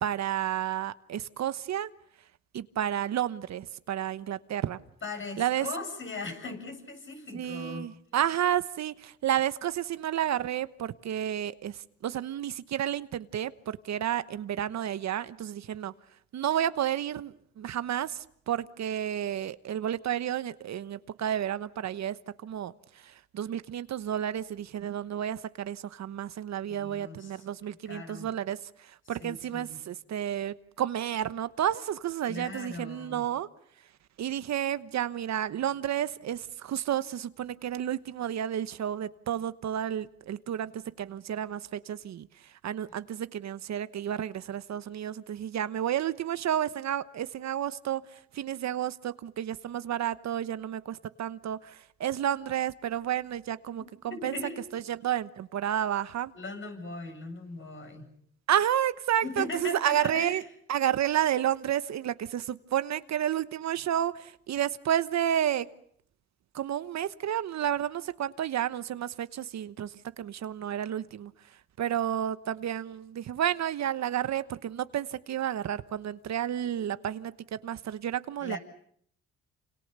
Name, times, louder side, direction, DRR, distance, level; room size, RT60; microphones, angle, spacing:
voice 1, 0.0-1.9 2.5-4.8 5.4-5.7 7.3-15.9 16.3-22.2 22.4-22.7 23.0-33.5 34.2-54.4 54.7-56.3 58.5-60.4 60.7-65.7 66.5-71.3 71.8-78.6, right 10 dB, 65° right, 1.1 m, -31 dB
voice 2, 5.0-7.9 26.7-27.4 27.9-28.3 29.1-29.8 32.3-33.2 54.1-54.6 56.3-58.1 59.2-60.4 78.4-78.6, left 3 dB, 40° left, 7.8 m, -39 dB
29.0 x 27.0 x 6.8 m
cardioid pair, 90°, 30 cm